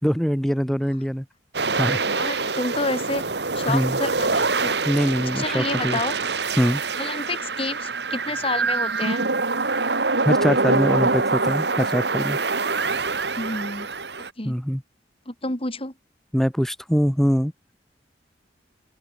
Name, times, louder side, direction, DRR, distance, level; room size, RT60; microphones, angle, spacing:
voice 1, 0.0-1.2 1.8-2.0 3.7-4.0 4.9-6.0 6.6-6.8 10.2-12.4 14.4-14.8 16.3-17.5, equal, ahead, 3.5 m, -23 dB
sound 1, 1.5-14.3, right 3 dB, 70° right, 2.3 m, -25 dB
voice 2, 2.1-3.2 3.5-4.8 5.3-6.2 7.0-9.3 13.4-13.9 14.4-14.6 15.3-15.9, left 2 dB, 35° left, 4.7 m, -29 dB
open air
head